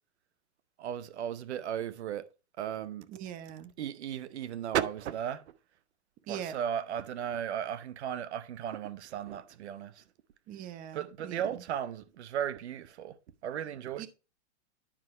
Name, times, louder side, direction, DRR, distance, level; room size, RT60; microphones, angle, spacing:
voice 1, 0.8-2.2 2.6-3.1 3.8-5.4 6.3-10.0 10.9-13.2 13.4-14.1, right 9 dB, 75° right, 0.8 m, -35 dB
voice 2, 3.1-3.7 6.3-6.5 10.5-11.4 14.0-14.1, right 10 dB, 25° right, 0.7 m, -41 dB
10.0 x 5.4 x 3.1 m
hypercardioid pair, 140°, 34 cm